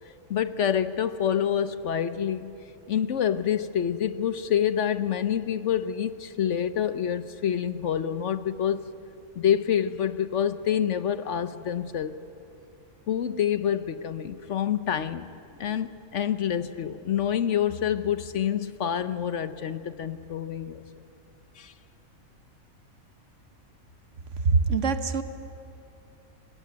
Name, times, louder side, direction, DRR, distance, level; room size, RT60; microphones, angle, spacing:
voice 1, 0.3-2.5 2.9-8.8 9.4-12.2 13.1-15.3 15.6-20.8 21.6-21.7, left 9 dB, 60° left, 1.0 m, -27 dB
voice 2, 24.4-25.2, right 4 dB, 60° right, 1.4 m, -23 dB
27.5 x 20.0 x 9.5 m
omnidirectional pair, 1.5 m